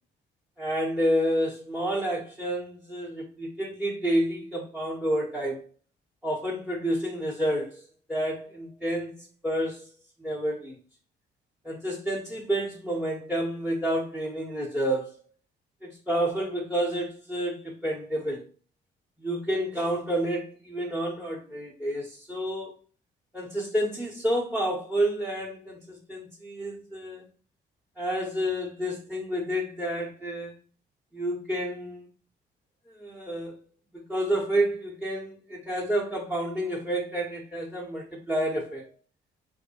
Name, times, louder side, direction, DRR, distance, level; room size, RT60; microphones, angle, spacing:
voice 1, 0.6-5.6 6.2-7.8 8.1-9.1 9.4-9.9 10.2-10.8 11.6-15.2 15.8-18.4 19.2-22.7 23.3-27.2 28.0-30.5 31.1-32.1 32.9-33.6 34.1-38.9, right 1 dB, ahead, -3 dB, 0.9 m, -29 dB
3.8 x 2.7 x 2.9 m, 0.38 s
cardioid pair, 90°, 20 cm